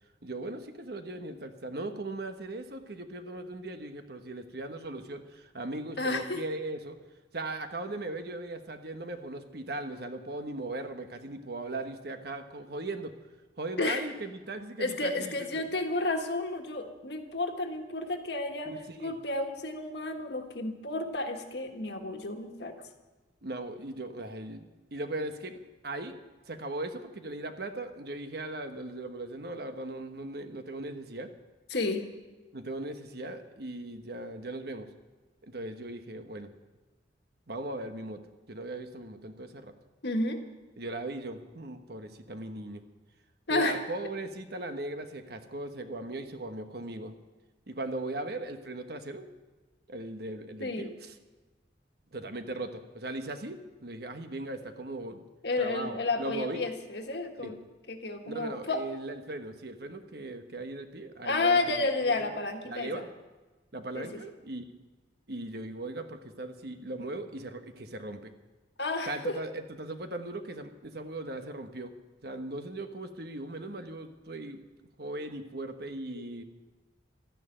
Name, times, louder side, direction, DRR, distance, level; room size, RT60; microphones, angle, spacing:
voice 1, 0.2-7.0 7.3-13.1 13.6-15.6 18.7-19.1 23.4-24.6 24.9-31.3 32.5-34.9 35.4-36.5 37.5-38.2 38.5-39.7 40.8-42.8 43.5-47.1 47.7-49.3 49.9-51.1 52.1-55.2 55.6-56.7 57.4-57.5 58.2-61.6 62.1-62.2 62.6-63.0 63.7-64.6 65.3-68.3 69.1-71.9 72.2-74.6 75.0-76.4, right 2 dB, 60° right, 7 dB, 1.2 m, -38 dB
voice 2, 6.0-6.4 13.8-14.1 14.8-18.7 19.0-22.7 31.7-32.0 40.0-40.4 43.5-43.8 50.6-50.9 55.4-57.6 57.9-58.8 61.2-63.0 63.9-64.2 68.8-69.4 76.1-76.2, left 2 dB, 65° left, 5 dB, 1.6 m, -31 dB
13.0 x 10.5 x 8.9 m, 1.2 s
head